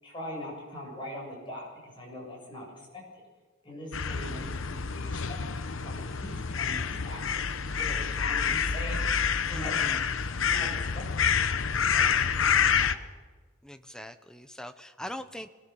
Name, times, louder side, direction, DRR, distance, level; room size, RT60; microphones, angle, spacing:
voice 1, 0.0-3.2 3.6-7.5 7.8-9.0 9.5-9.9 10.3-11.6 11.9-12.1 12.4-12.9 15.0-15.1, left 1 dB, 20° left, -2 dB, 7.9 m, -42 dB
sound 1, 3.9-12.9, left 7 dB, 65° left, 0.9 m, -28 dB
voice 2, 9.5-10.0 13.6-15.5, equal, 5° left, 9 dB, 0.9 m, -41 dB
24.5 x 19.5 x 7.2 m, 1.4 s
head